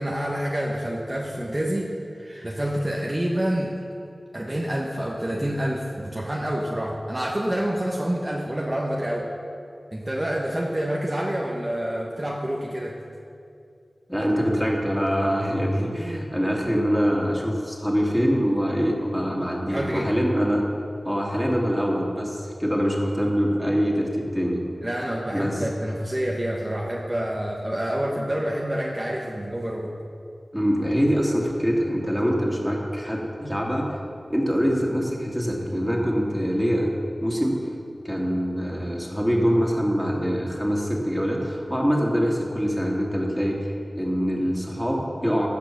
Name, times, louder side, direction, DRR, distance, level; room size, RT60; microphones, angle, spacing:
voice 1, 0.0-3.7 4.3-9.3 9.9-13.0 19.7-20.1 24.8-29.9, right 1 dB, 30° right, -2 dB, 1.3 m, -27 dB
voice 2, 14.1-20.6 21.0-24.6 25.3-25.6 30.5-33.9 34.3-36.9 37.2-37.6 38.0-45.5, equal, ahead, -2 dB, 2.5 m, -24 dB
15.5 x 6.0 x 6.0 m, 2.5 s
cardioid pair, 40°, 0 cm